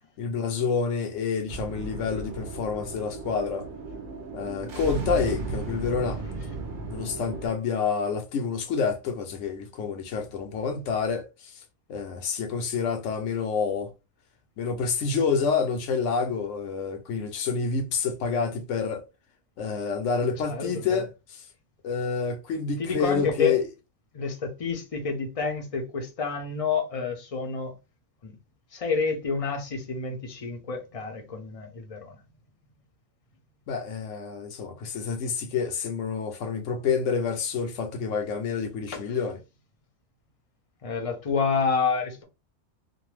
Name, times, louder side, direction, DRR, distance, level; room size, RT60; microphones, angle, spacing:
voice 1, 0.2-3.7 4.3-6.2 6.9-11.5 11.9-13.9 14.6-19.0 19.6-21.4 21.8-23.7 33.7-39.4, left 5 dB, 75° left, 1.0 m, -28 dB
sound 1, 1.5-7.5, right 3 dB, 55° right, 0.7 m, -35 dB
voice 2, 20.5-21.0 22.8-23.6 24.1-27.7 28.2-28.3 28.7-32.2 38.9-39.0 40.8-42.2, left 5 dB, 40° left, 0.5 m, -29 dB
2.6 x 2.1 x 3.1 m
omnidirectional pair, 1.3 m